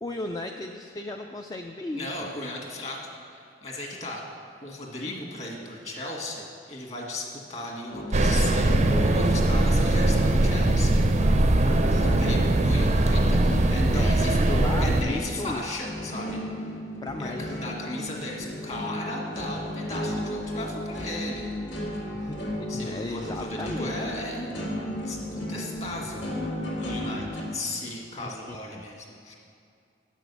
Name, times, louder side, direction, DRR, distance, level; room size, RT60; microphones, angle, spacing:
voice 1, 0.0-2.2 11.6-12.1 13.9-15.7 17.0-17.5 22.1-24.0 28.2-28.8, left 2 dB, 20° left, 4 dB, 0.3 m, -35 dB
voice 2, 1.9-4.2 4.6-11.0 11.3-13.4 13.7-14.4 14.8-16.7 17.2-21.5 22.7-24.5 25.0-26.2 26.7-29.3, left 1 dB, 40° left, -1 dB, 1.7 m, -36 dB
sound 1, 7.9-27.4, left 1 dB, 90° left, 2.0 m, -34 dB
sound 2, 8.1-15.0, right 2 dB, 40° right, 0.5 m, -21 dB
8.7 x 6.3 x 6.8 m, 2.5 s
head